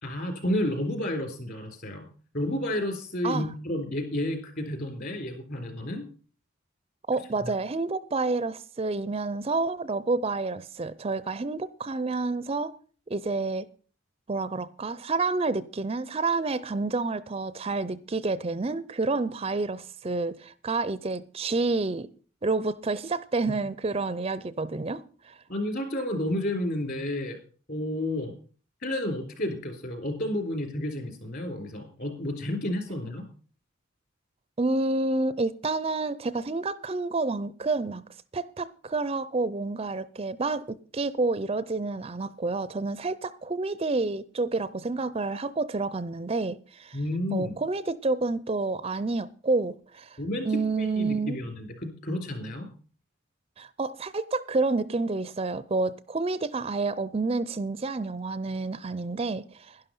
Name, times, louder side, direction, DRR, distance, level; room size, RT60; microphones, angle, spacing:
voice 1, 0.0-2.1 2.3-6.0 7.4-7.5 25.5-27.4 27.7-28.3 28.8-33.2 46.9-47.5 50.2-50.5 50.8-52.7, left 1 dB, 50° left, 3.9 m, -31 dB
voice 2, 7.1-12.8 13.1-13.7 14.3-22.1 22.4-25.4 34.6-38.0 38.3-47.0 47.3-50.2 50.4-51.4 53.6-59.8, right 3 dB, 30° right, 0.5 m, -29 dB
11.5 x 11.0 x 5.4 m
head